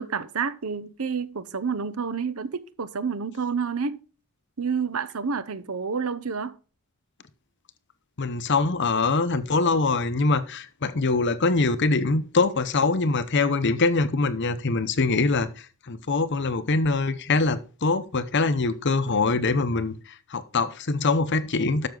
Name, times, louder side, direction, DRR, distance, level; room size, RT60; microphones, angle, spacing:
voice 1, 0.0-4.0 4.6-6.6, right 5 dB, 75° right, 0.8 m, -29 dB
voice 2, 8.2-21.9, left 3 dB, 55° left, 0.8 m, -24 dB
12.0 x 6.9 x 3.8 m
head